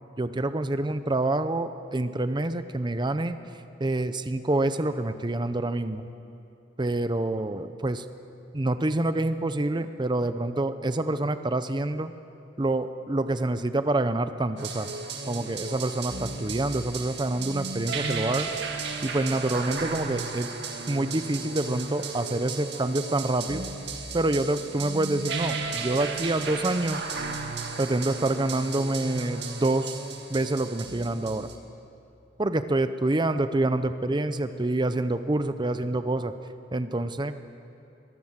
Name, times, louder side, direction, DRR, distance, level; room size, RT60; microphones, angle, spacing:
voice 1, 0.2-3.4 3.8-6.1 6.8-8.0 8.5-12.1 12.6-14.9 15.3-18.5 19.0-20.5 20.9-23.7 24.1-27.0 27.8-30.0 30.3-31.5 32.4-36.3 36.7-37.3, right 2 dB, 25° right, 11 dB, 0.6 m, -27 dB
sound 1, 14.6-31.6, right 4 dB, 65° right, 2.1 m, -34 dB
23.0 x 17.0 x 7.4 m, 2.7 s
head